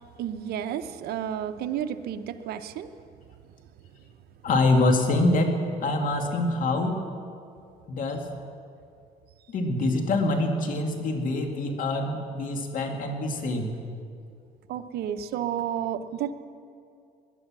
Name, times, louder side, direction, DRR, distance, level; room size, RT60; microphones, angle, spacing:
voice 1, 0.2-3.0 14.7-16.3, right 10 dB, 70° right, 9 dB, 0.8 m, -31 dB
voice 2, 4.4-7.0 7.9-8.3 9.5-13.7, left 2 dB, 55° left, 3 dB, 2.2 m, -25 dB
20.5 x 10.5 x 6.1 m, 2.4 s
cardioid pair, 110°, 17 cm